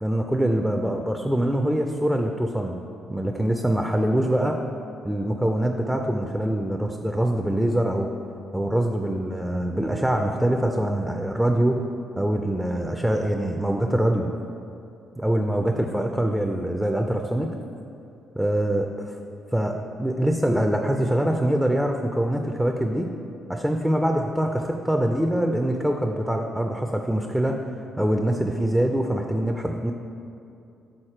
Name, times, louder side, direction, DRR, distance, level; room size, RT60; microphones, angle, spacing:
voice 1, 0.0-2.8 3.1-4.6 5.0-8.1 8.5-11.8 12.2-14.3 15.2-17.5 18.3-18.9 19.5-23.1 23.5-27.7 28.0-29.9, right 1 dB, 5° right, 3 dB, 0.4 m, -24 dB
6.5 x 4.1 x 4.4 m, 2.6 s
cardioid pair, 90°, 0 cm